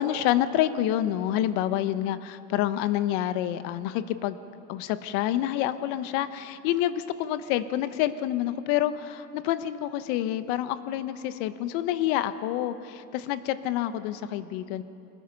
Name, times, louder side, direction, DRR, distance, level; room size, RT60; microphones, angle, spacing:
voice 1, 0.0-4.4 4.7-14.8, left 12 dB, 60° left, 12 dB, 1.2 m, -28 dB
24.5 x 19.5 x 5.4 m, 2.9 s
hypercardioid pair, 105°, 47 cm